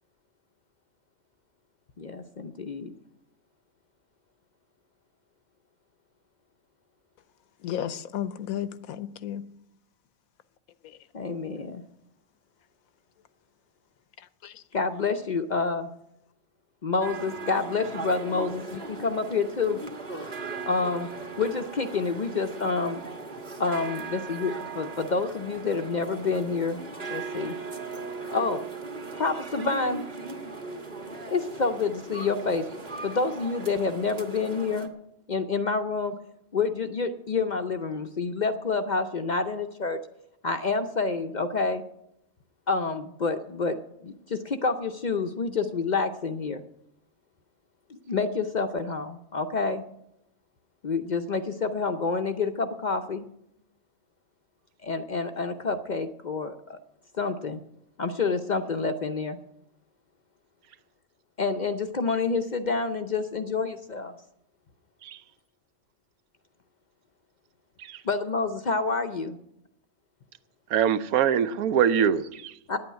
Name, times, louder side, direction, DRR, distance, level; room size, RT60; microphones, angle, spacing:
voice 1, 2.0-2.9 11.1-11.8 14.7-15.9 16.8-19.8 20.6-21.1 21.4-23.0 23.6-26.8 27.1-27.6 28.3-28.7 29.2-30.0 31.3-32.7 33.0-34.9 35.3-36.1 36.5-40.0 40.4-41.8 42.7-46.6 47.9-49.8 50.8-53.3 54.8-56.8 57.1-57.6 58.0-59.4 61.4-64.1 68.0-69.4 72.7-72.8, left 4 dB, 50° left, 0.5 m, -28 dB
voice 2, 7.6-9.4 10.8-11.0 14.2-14.6, left 10 dB, 85° left, 1.2 m, -34 dB
sound 1, 17.0-34.9, right 3 dB, 35° right, 1.3 m, -38 dB
voice 3, 70.7-72.5, right 8 dB, 85° right, 1.1 m, -23 dB
10.0 x 8.7 x 9.1 m
omnidirectional pair, 1.5 m